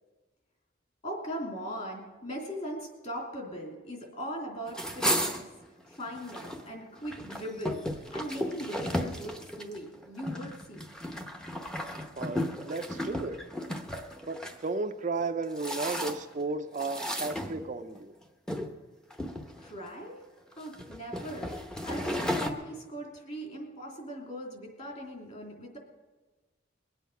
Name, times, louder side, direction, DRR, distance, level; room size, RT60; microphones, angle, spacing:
voice 1, 1.0-5.5 5.9-10.8 19.6-20.2 20.5-25.8, equal, 35° left, 0 dB, 3.2 m, -40 dB
sound 1, 4.7-6.6 7.0-14.6 15.2-16.4 16.8-18.0 18.5-18.7 19.1-19.9 20.5-22.5, equal, 5° left, 0.8 m, -34 dB
voice 2, 12.2-13.4 14.3-18.1, right 3 dB, 40° right, 7 dB, 0.5 m, -34 dB
22.0 x 8.3 x 5.7 m, 1.3 s
head